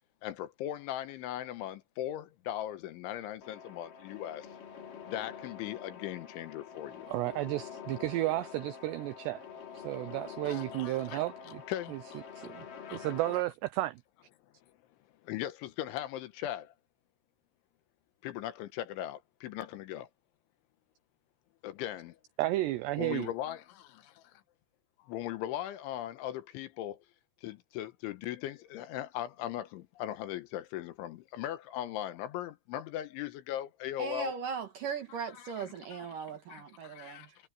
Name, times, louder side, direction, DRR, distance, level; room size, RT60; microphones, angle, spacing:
voice 1, 0.2-4.5 5.1-7.1 10.5-11.2 11.7-12.5 12.9-13.0 15.2-16.7 18.2-20.1 21.6-22.1 23.0-24.4 25.0-27.1 27.4-34.4 35.3-36.1 36.5-37.3, left 12 dB, 75° left, 3.4 m, -39 dB
sound 1, 3.4-13.4, left 7 dB, 45° left, 4.1 m, -46 dB
voice 2, 7.1-9.4 9.7-11.6 11.9-12.0 12.4-12.6 12.9-14.0 22.4-23.3, right 17 dB, 90° right, 2.4 m, -32 dB
voice 3, 34.0-37.4, right 6 dB, 60° right, 2.5 m, -38 dB
omnidirectional pair, 5.7 m